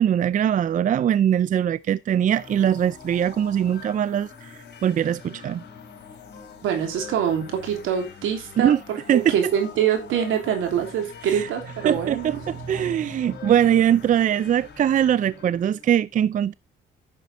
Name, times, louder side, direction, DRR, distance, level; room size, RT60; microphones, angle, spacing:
voice 1, 0.0-4.5 4.8-5.6 8.6-8.8 9.1-9.3 11.3-11.5 11.8-16.5, right 9 dB, 40° right, 0.4 m, -21 dB
sound 1, 2.3-15.8, left 6 dB, 60° left, 3.6 m, -44 dB
voice 2, 6.6-12.3, right 9 dB, 85° right, 3.1 m, -25 dB
10.0 x 6.7 x 4.1 m
cardioid pair, 90°, 20 cm